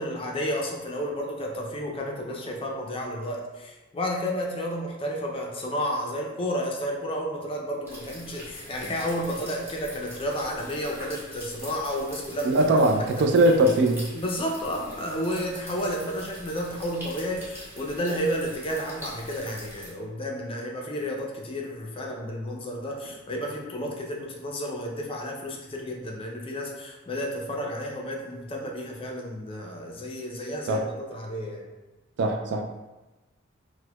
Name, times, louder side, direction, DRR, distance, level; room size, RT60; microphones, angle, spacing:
voice 1, 0.0-12.7 13.0-13.1 14.1-31.7, equal, 25° left, 0 dB, 0.4 m, -31 dB
sound 1, 7.8-19.9, equal, 10° right, 1.0 m, -43 dB
voice 2, 12.4-14.1 30.7-30.8 32.2-32.7, right 1 dB, 55° right, 4 dB, 0.3 m, -21 dB
4.4 x 2.1 x 2.2 m, 1.1 s
head